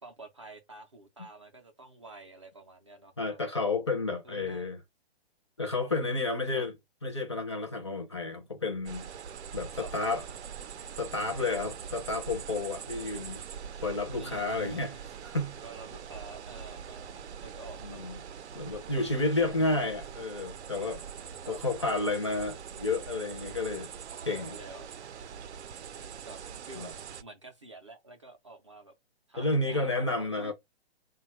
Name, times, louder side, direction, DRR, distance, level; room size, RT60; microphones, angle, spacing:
voice 1, 0.0-3.4 4.2-4.7 6.5-6.7 9.8-9.9 14.1-15.0 15.6-18.0 18.9-19.6 21.4-21.6 24.3-24.9 26.3-26.4 26.7-27.0 27.2-29.0 29.3-30.5, right 2 dB, 30° right, 0.4 m, -48 dB
voice 2, 3.2-4.8 5.6-6.7 7.0-9.1 9.5-10.2 11.0-13.4 13.8-14.9 15.2-15.5 17.8-18.2 18.5-21.0 21.5-23.9 24.2-24.6 26.8-26.9 29.4-30.5, left 2 dB, 25° left, 0.4 m, -31 dB
sound 1, 8.9-27.2, right 7 dB, 85° right, 0.6 m, -43 dB
3.8 x 2.2 x 4.3 m
hypercardioid pair, 170°, 33 cm